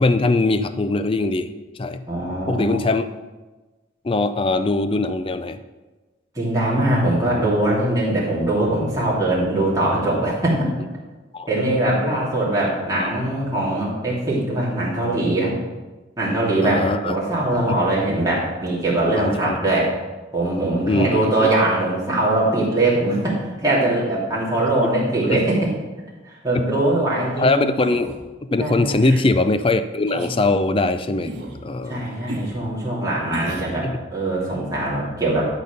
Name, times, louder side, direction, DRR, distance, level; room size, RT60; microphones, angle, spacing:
voice 1, 0.0-2.0 2.5-3.1 4.0-5.6 11.3-12.0 13.0-13.1 16.6-17.1 17.7-17.8 19.2-19.6 20.8-21.5 25.2-25.4 27.4-28.2 28.5-31.3 31.6-32.1 33.8-34.0, left 2 dB, 30° left, 11 dB, 0.4 m, -21 dB
voice 2, 2.1-2.8 6.3-10.7 11.5-15.5 16.2-19.9 20.3-25.6 26.2-27.6 28.6-29.0 31.9-35.4, right 1 dB, 20° right, -6 dB, 2.8 m, -21 dB
sound 1, 27.8-28.2 28.9-29.3 30.1-30.4 31.2-31.6 32.3-32.5 33.3-33.7, right 1 dB, 60° right, 1.8 m, -33 dB
12.0 x 4.1 x 6.7 m, 1.2 s
head